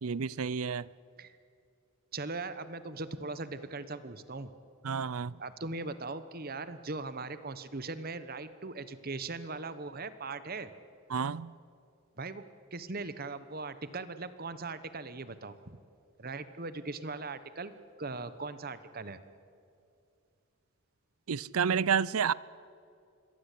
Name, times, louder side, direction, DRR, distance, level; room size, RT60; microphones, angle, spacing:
voice 1, 0.0-0.9 4.8-5.4 11.1-11.5 21.3-22.3, right 6 dB, 75° right, 0.5 m, -30 dB
voice 2, 2.1-4.5 5.4-10.7 12.2-12.4 12.7-15.8 16.2-17.7 18.0-19.2, right 3 dB, 40° right, 1.1 m, -39 dB
26.0 x 21.5 x 8.5 m
head